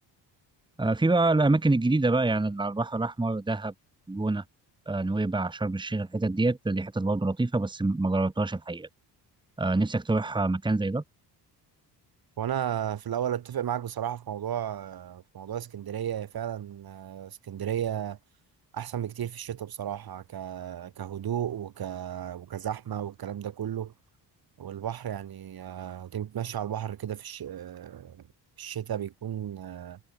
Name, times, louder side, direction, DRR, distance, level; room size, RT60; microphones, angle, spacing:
voice 1, 0.8-3.7 4.1-4.4 4.9-8.9 9.6-11.0, right 2 dB, 10° right, 1.7 m, -26 dB
voice 2, 12.4-18.2 18.7-23.9 24.6-28.3 28.6-30.0, right 10 dB, 55° right, 3.3 m, -34 dB
cardioid pair, 100°, 43 cm